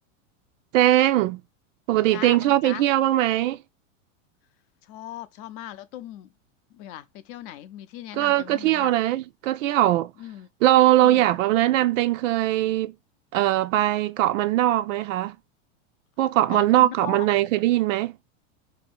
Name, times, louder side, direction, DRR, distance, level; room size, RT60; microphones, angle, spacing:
voice 1, 0.7-1.4 1.9-3.6 8.2-10.1 10.6-12.9 13.3-15.4 16.2-18.1, right 14 dB, 75° right, 0.5 m, -21 dB
voice 2, 2.1-2.9 4.8-6.3 6.7-9.0 10.2-10.5 11.0-11.3 16.5-17.3, left 13 dB, 40° left, 0.5 m, -38 dB
4.4 x 2.8 x 4.2 m
supercardioid pair, 140°, 39 cm